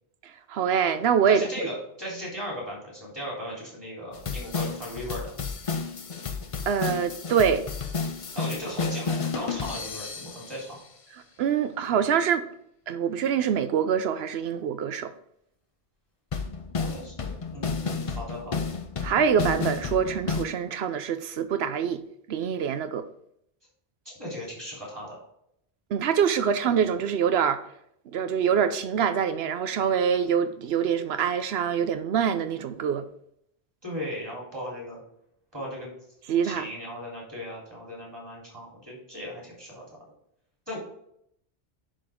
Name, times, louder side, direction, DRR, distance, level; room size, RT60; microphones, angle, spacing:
voice 1, 0.5-1.7 6.7-7.7 11.4-12.5 12.9-15.1 19.0-22.0 22.3-23.0 25.9-27.6 28.1-33.0 36.3-36.7, right 7 dB, 75° right, 0.8 m, -25 dB
voice 2, 1.3-5.3 8.2-10.8 16.8-18.7 24.1-25.2 33.8-35.0 35.5-35.9 36.4-39.9 40.7-40.8, equal, 20° right, 3.5 m, -37 dB
sound 1, 4.1-10.7 16.3-20.4, left 5 dB, 40° left, 0.5 m, -32 dB
11.0 x 3.9 x 3.7 m
omnidirectional pair, 1.1 m